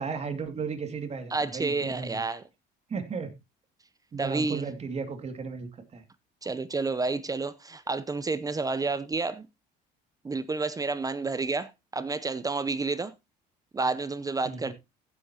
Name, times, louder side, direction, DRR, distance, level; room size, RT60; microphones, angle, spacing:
voice 1, 0.0-2.2 2.9-3.3 4.1-6.0 14.4-14.7, right 5 dB, 35° right, 2.4 m, -35 dB
voice 2, 1.3-2.4 4.2-4.6 6.4-9.5 10.2-13.1 13.7-14.7, right 3 dB, 20° right, 0.7 m, -30 dB
15.5 x 7.9 x 2.9 m
cardioid pair, 100°, 19 cm